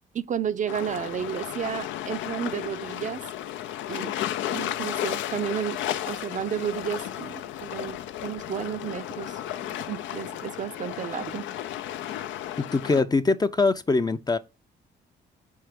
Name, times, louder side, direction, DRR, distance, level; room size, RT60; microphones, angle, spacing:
voice 1, 0.1-3.2 3.9-4.2 4.5-5.8 6.1-9.4 9.7-11.5, right 9 dB, 40° right, 0.5 m, -32 dB
sound 1, 0.7-13.0, left 12 dB, 85° left, 0.5 m, -33 dB
voice 2, 12.6-14.4, left 3 dB, 20° left, 0.4 m, -23 dB
4.6 x 4.4 x 5.0 m
cardioid pair, 85°, 19 cm